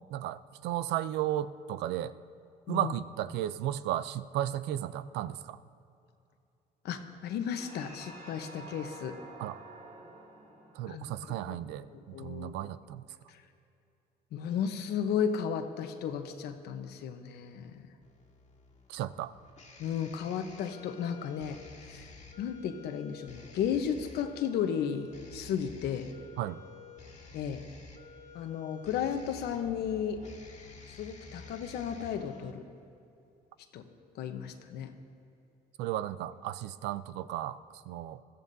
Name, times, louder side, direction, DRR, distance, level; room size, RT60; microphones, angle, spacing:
voice 1, 0.1-2.2 2.7-5.6 9.4-9.6 10.7-11.9 12.2-13.0 18.9-19.3 26.4-26.6 35.8-38.2, right 12 dB, 85° right, 15 dB, 0.5 m, -34 dB
voice 2, 6.8-9.2 10.9-11.0 11.5-11.6 11.9-12.6 13.3-13.4 14.3-17.7 19.8-22.1 22.4-26.1 27.3-27.7 28.3-30.2 30.9-32.6 33.7-33.8 34.1-34.9, left 8 dB, 75° left, 7 dB, 1.0 m, -34 dB
sound 1, 7.5-12.3, right 2 dB, 40° right, 3.1 m, -50 dB
sound 2, 18.0-32.5, left 3 dB, 45° left, 1.7 m, -51 dB
21.5 x 14.5 x 2.7 m, 2.6 s
cardioid pair, 110°, 17 cm